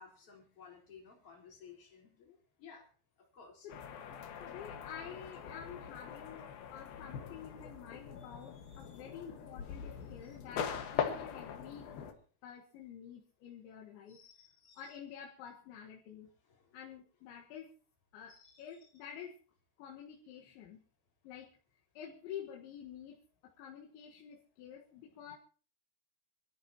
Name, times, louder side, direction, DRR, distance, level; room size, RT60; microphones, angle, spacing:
voice 1, 0.0-2.9 3.3-3.7 8.2-9.0 10.2-10.4 14.1-15.0 15.7-15.8 16.5-16.7 18.3-18.9, left 6 dB, 30° left, -1 dB, 5.0 m, -57 dB
sound 1, 3.7-12.1, left 8 dB, 60° left, 3.1 m, -42 dB
voice 2, 4.4-12.1 12.4-14.2 14.8-16.3 16.7-17.8 18.1-19.4 19.8-20.8 21.2-21.5 22.0-25.4, left 8 dB, 85° left, -1 dB, 4.0 m, -49 dB
25.5 x 14.5 x 3.0 m, 0.38 s
omnidirectional pair, 5.1 m